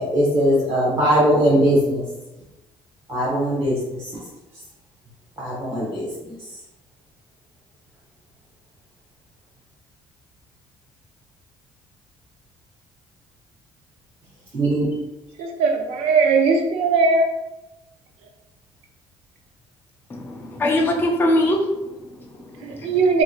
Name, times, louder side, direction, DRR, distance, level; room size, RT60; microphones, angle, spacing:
voice 1, 0.0-2.0 3.1-4.1 5.4-6.1 14.5-15.0, equal, 25° right, -9 dB, 0.9 m, -20 dB
voice 2, 15.4-17.3 22.6-23.2, right 4 dB, 90° right, 4 dB, 0.4 m, -19 dB
voice 3, 20.1-23.0, left 1 dB, 20° left, 0 dB, 0.4 m, -23 dB
2.9 x 2.5 x 2.4 m, 0.98 s
cardioid pair, 135°, 10 cm